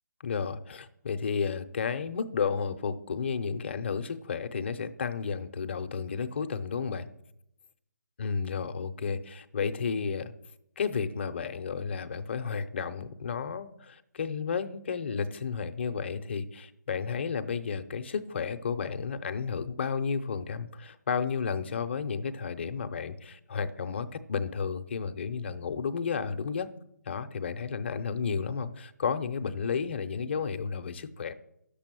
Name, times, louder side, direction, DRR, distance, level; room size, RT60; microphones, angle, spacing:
voice 1, 0.2-7.1 8.2-10.3 10.8-26.7 27.1-31.3, left 6 dB, 40° left, 9 dB, 0.7 m, -32 dB
10.0 x 6.9 x 7.6 m, 0.77 s
hypercardioid pair, 165°, 10 cm